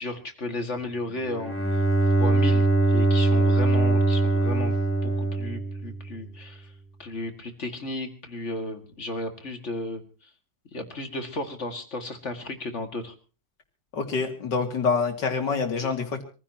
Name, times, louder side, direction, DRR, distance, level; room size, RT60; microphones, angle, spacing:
voice 1, 0.0-1.8 2.2-4.8 5.0-6.7 7.0-10.0 10.7-13.1, left 2 dB, 40° left, 6 dB, 2.2 m, -34 dB
Bowed string instrument, 1.2-6.2, right 2 dB, 5° left, 1.9 m, -22 dB
voice 2, 13.9-16.2, left 5 dB, 70° left, 5 dB, 2.9 m, -26 dB
25.5 x 15.5 x 2.9 m, 0.35 s
omnidirectional pair, 2.0 m